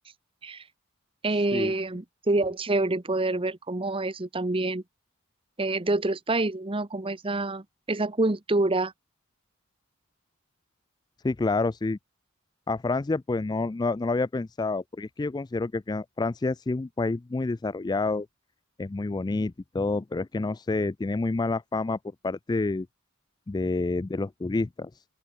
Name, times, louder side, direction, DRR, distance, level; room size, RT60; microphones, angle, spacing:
voice 1, 1.2-4.8 5.6-8.9, right 2 dB, 25° right, 0.9 m, -27 dB
voice 2, 11.2-12.0 12.7-18.3 18.8-22.0 22.2-22.9 23.5-24.9, left 3 dB, 20° left, 0.3 m, -28 dB
open air
head